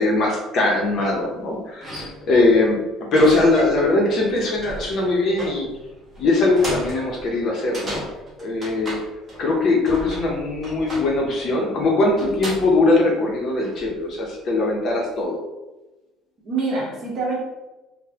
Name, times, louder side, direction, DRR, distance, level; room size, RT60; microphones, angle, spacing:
voice 1, 0.0-2.8 3.1-5.7 6.2-8.0 8.4-9.0 9.4-15.4, left 2 dB, 40° left, -1 dB, 0.6 m, -20 dB
sound 1, 1.3-1.4 1.8-2.5 3.1-3.9 4.2-9.6 9.9-11.3 12.2-12.8 13.5-14.0, equal, 20° right, 0.9 m, -34 dB
voice 2, 3.1-3.5 16.4-17.4, right 3 dB, 45° right, -4 dB, 1.1 m, -26 dB
3.9 x 2.1 x 2.8 m, 1.1 s
cardioid pair, 165°, 0 cm